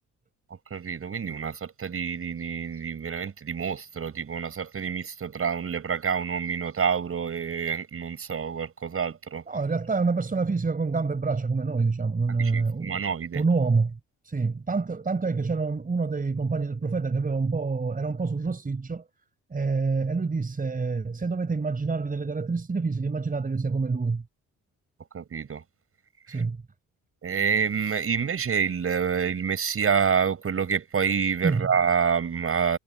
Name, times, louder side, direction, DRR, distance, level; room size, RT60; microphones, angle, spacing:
voice 1, 0.5-9.4 12.3-13.4 25.1-25.6 26.3-26.4 27.2-32.8, right 6 dB, 45° right, 7.2 m, -27 dB
voice 2, 9.5-13.0 13.3-14.0 14.2-19.1 19.5-24.2 26.3-26.6 31.4-31.7, right 4 dB, 30° right, 4.7 m, -27 dB
cardioid pair, 90°, 30 cm